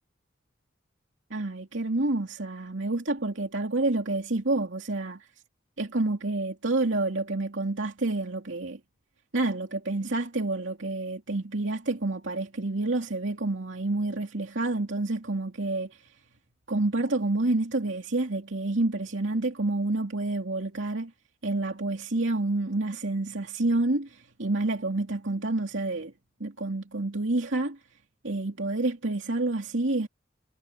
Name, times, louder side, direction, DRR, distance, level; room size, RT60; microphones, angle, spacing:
voice 1, 1.3-5.3 5.8-8.8 9.3-16.1 16.7-21.1 21.4-26.1 26.4-27.8 28.2-30.1, right 2 dB, 75° right, 2.6 m, -28 dB
head